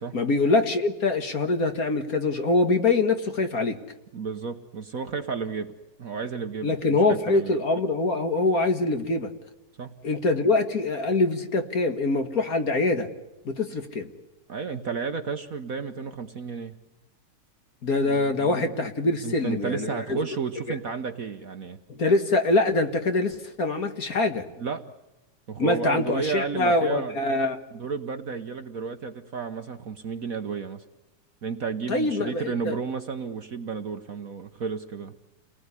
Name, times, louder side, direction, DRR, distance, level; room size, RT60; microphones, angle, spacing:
voice 1, 0.1-3.8 6.6-9.3 10.0-13.1 13.5-14.1 17.8-20.2 20.7-20.8 21.9-24.4 25.6-27.6 31.9-32.8, left 2 dB, 45° left, 6 dB, 2.0 m, -24 dB
voice 2, 4.1-5.7 6.0-7.6 9.8-9.9 14.5-16.8 18.0-18.7 19.2-21.8 24.6-24.8 25.5-27.1 27.7-30.8 31.4-35.1, right 5 dB, 50° right, 8 dB, 1.3 m, -32 dB
29.5 x 19.5 x 9.8 m, 0.98 s
omnidirectional pair, 2.3 m